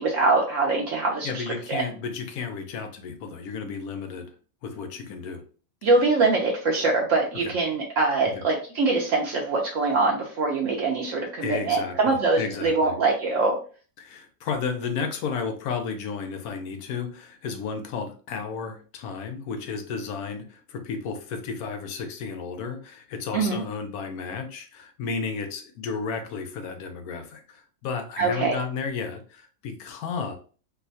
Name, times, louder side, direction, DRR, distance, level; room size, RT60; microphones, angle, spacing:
voice 1, 0.0-1.4 1.7-1.8 5.8-13.6 23.3-23.6 28.2-28.6, right 3 dB, 65° right, -1 dB, 0.9 m, -23 dB
voice 2, 1.2-4.3 4.6-5.4 7.3-7.5 8.3-8.4 11.4-13.0 14.0-30.4, left 5 dB, 90° left, 6 dB, 1.1 m, -33 dB
4.5 x 2.1 x 2.6 m, 0.39 s
omnidirectional pair, 1.6 m